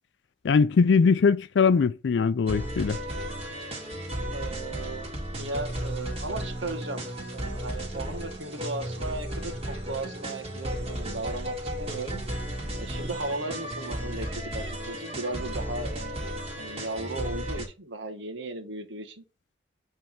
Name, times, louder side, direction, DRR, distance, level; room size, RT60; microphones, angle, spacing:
voice 1, 0.4-3.0, left 5 dB, 70° left, 0.4 m, -21 dB
sound 1, 2.5-17.7, right 1 dB, 35° right, 2.1 m, -34 dB
voice 2, 4.3-7.0 7.3-12.2 12.8-19.2, right 2 dB, 80° right, 1.3 m, -36 dB
7.7 x 3.4 x 4.4 m
head